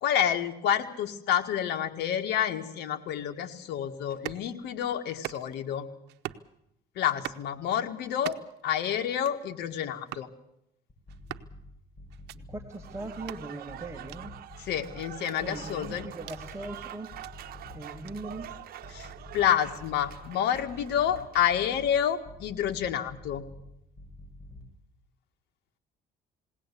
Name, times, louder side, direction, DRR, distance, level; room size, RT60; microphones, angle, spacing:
voice 1, 0.0-5.9 7.0-8.4 8.6-10.3 14.6-16.1 18.9-19.1 19.3-23.4, left 9 dB, 80° left, 7 dB, 1.8 m, -29 dB
sound 1, 4.1-4.5 5.1-5.7 6.1-6.5 7.1-7.5 8.1-8.6 9.1-9.4 10.1-10.3 11.1-11.5 12.1-12.4 13.1-13.4 14.1-14.2 15.1-16.4 17.0-17.3 18.1-18.2, right 15 dB, 85° right, 0.9 m, -42 dB
sound 2, 10.9-11.6 12.0-13.3 13.7-15.1 15.4-16.8 17.1-18.5 18.8-20.2 20.5-21.9 22.2-23.6 24.0-24.6, left 1 dB, 25° left, 7.3 m, -48 dB
voice 2, 12.3-14.4 15.4-17.1 17.7-18.5, right 2 dB, 15° right, 4 dB, 2.2 m, -40 dB
Applause / Crowd, 12.7-21.5, right 12 dB, 65° right, 1.1 m, -46 dB
21.0 x 17.5 x 8.4 m, 0.79 s
cardioid pair, 110°, 17 cm